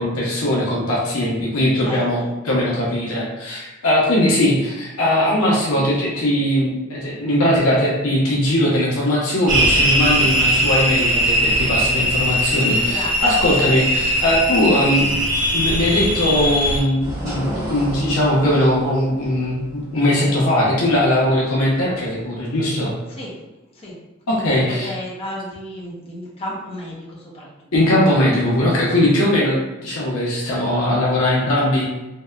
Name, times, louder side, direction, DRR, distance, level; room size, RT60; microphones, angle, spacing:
voice 1, 0.0-15.1 15.5-22.9 24.3-24.9 27.7-31.8, left 1 dB, 80° left, -5 dB, 0.7 m, -19 dB
voice 2, 1.8-2.3 10.0-10.3 12.7-13.1 14.9-15.0 23.1-23.3 23.7-23.9 24.3-27.5 29.0-29.1, equal, 25° left, -5 dB, 0.6 m, -33 dB
sound 1, 9.5-16.8, equal, 60° right, 0.6 m, -19 dB
sound 2, 17.0-22.2, equal, 15° right, 1.0 m, -32 dB
2.8 x 2.1 x 2.3 m, 1.0 s
head